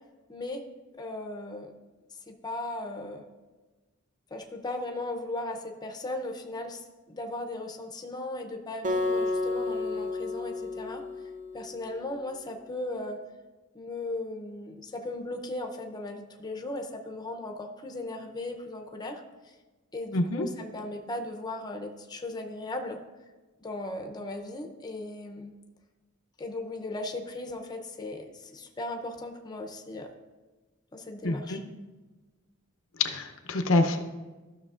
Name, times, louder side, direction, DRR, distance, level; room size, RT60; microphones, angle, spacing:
voice 1, 0.3-0.6 0.9-1.7 2.3-3.2 4.3-11.0 11.5-13.2 13.7-19.5 19.9-23.0 23.6-25.5 26.4-30.1 30.9-31.6, left 2 dB, 20° left, 3 dB, 0.6 m, -37 dB
Acoustic guitar, 8.8-12.1, left 2 dB, 40° right, 0.6 m, -31 dB
voice 2, 20.1-20.5 31.2-31.6 33.0-34.0, left 1 dB, 85° left, 5 dB, 0.7 m, -26 dB
13.0 x 6.2 x 2.4 m, 1.2 s
head